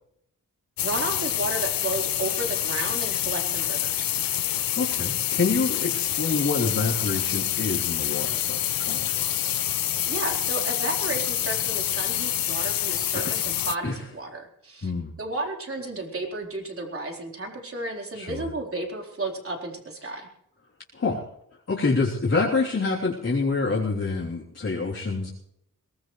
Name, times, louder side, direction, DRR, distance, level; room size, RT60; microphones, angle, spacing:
sound 1, 0.8-13.7, left 12 dB, 85° left, 0.6 m, -27 dB
voice 1, 0.8-4.1 10.1-14.9 15.2-20.3, right 2 dB, 40° right, 1 dB, 4.1 m, -33 dB
voice 2, 4.8-9.5 13.1-13.3 13.8-14.0 14.8-15.1 18.1-18.5 20.9-21.2 21.7-25.3, left 3 dB, 45° left, -6 dB, 3.4 m, -27 dB
22.0 x 19.5 x 3.2 m, 0.75 s
wide cardioid pair, 95°, 33 cm